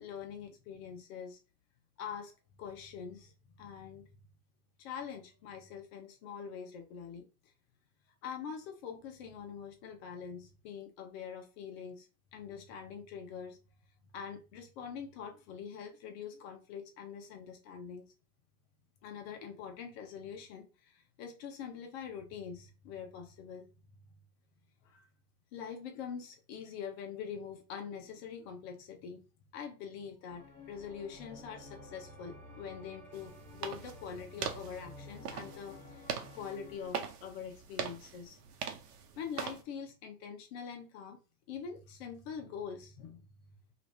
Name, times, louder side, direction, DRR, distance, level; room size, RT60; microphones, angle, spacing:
voice 1, 0.0-1.4 2.0-2.3 2.6-4.1 4.8-7.3 8.2-13.6 14.1-18.1 19.0-23.7 24.8-25.1 25.5-29.2 29.5-36.0 36.3-38.4 39.2-41.2 41.5-43.6, left 7 dB, 40° left, 0.9 m, -44 dB
sound 1, 30.3-36.9, left 2 dB, 5° left, 1.9 m, -52 dB
sound 2, 33.1-39.6, right 7 dB, 75° right, 1.0 m, -42 dB
3.2 x 3.1 x 4.4 m
supercardioid pair, 150°, 47 cm